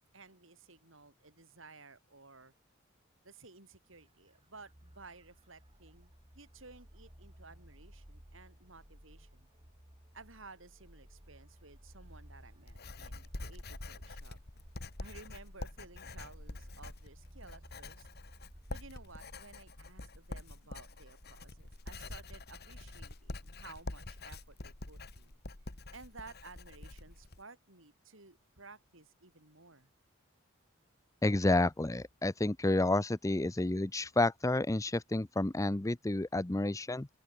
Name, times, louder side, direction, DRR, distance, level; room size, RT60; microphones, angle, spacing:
voice 1, 0.0-2.5 3.2-9.5 10.1-14.4 15.0-18.1 18.7-25.4 25.9-29.9, right 3 dB, 70° right, 5.5 m, -55 dB
sound 1, 3.9-19.5, equal, 25° right, 3.3 m, -57 dB
Writing, 12.0-27.4, left 2 dB, 55° left, 2.2 m, -46 dB
voice 2, 31.2-37.1, left 2 dB, 15° left, 0.7 m, -30 dB
open air
head